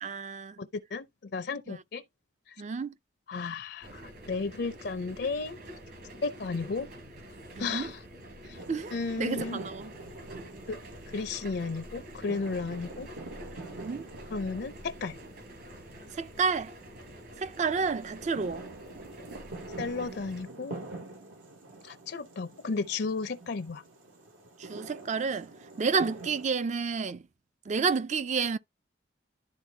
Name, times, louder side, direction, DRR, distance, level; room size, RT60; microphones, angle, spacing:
voice 1, 0.0-0.5 1.7-1.8 2.6-2.9 7.5-7.9 8.7-9.9 13.8-14.1 16.1-16.7 17.4-18.7 24.6-25.5 25.8-27.2 27.7-28.6, right 5 dB, 35° right, 0.4 m, -30 dB
voice 2, 0.6-2.0 2.5-2.6 3.3-5.6 6.2-6.9 7.6-8.0 8.5-8.6 8.9-9.6 10.7-10.8 11.1-13.1 14.3-15.2 19.8-20.8 21.8-23.8, left 4 dB, 55° left, 0.5 m, -34 dB
sound 1, 3.8-20.4, equal, 55° right, 3.9 m, -47 dB
sound 2, 8.6-26.5, right 2 dB, 90° right, 2.4 m, -46 dB
12.0 x 4.1 x 2.8 m
head